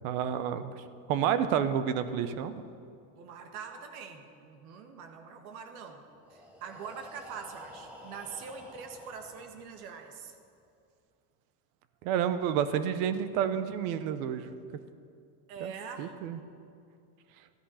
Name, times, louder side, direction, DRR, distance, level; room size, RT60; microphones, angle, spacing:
voice 1, 0.0-0.7 1.1-2.5 12.0-14.5 15.6-15.7 16.0-16.4, right 9 dB, 70° right, 12 dB, 1.0 m, -29 dB
voice 2, 3.2-6.0 6.3-10.3 15.5-16.1, right 6 dB, 90° right, 5 dB, 1.7 m, -44 dB
Breathing, 6.1-10.0, left 1 dB, 5° right, 1.2 m, -51 dB
13.0 x 11.5 x 5.7 m, 2.4 s
cardioid pair, 165°, 43 cm